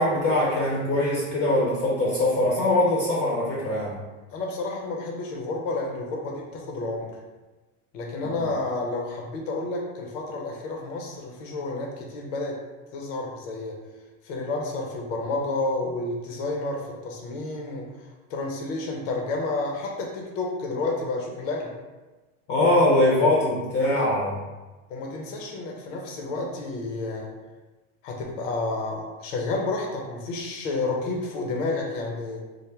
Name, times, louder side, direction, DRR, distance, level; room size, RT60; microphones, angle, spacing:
voice 1, 0.0-4.0 8.2-8.3 22.5-24.4, left 1 dB, 30° left, -5 dB, 0.6 m, -22 dB
voice 2, 4.3-7.2 7.9-12.6 12.9-13.8 14.2-21.7 24.9-27.3 28.0-32.4, left 2 dB, 80° left, 0 dB, 0.7 m, -30 dB
3.4 x 2.1 x 3.3 m, 1.2 s
supercardioid pair, 140°, 38 cm